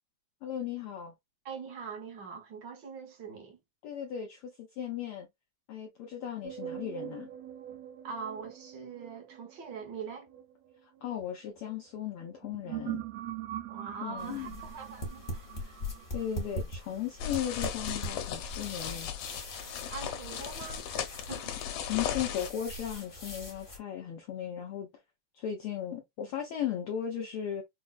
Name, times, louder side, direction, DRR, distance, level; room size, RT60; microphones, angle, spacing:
voice 1, 0.4-1.1 3.8-5.3 5.7-7.3 10.8-13.0 14.0-14.6 15.6-15.9 16.1-19.1 21.8-24.9 25.3-27.6, left 9 dB, 90° left, 1.2 m, -36 dB
voice 2, 1.4-3.6 8.0-10.3 13.7-15.5 19.9-21.5, right 5 dB, 65° right, 1.0 m, -42 dB
sound 1, 6.4-11.7 12.3-17.3, right 13 dB, 80° right, 1.4 m, -43 dB
sound 2, 14.2-23.8, left 1 dB, 50° left, 0.6 m, -42 dB
sound 3, 17.2-22.5, left 9 dB, 70° left, 1.5 m, -37 dB
5.9 x 2.1 x 2.4 m
omnidirectional pair, 3.4 m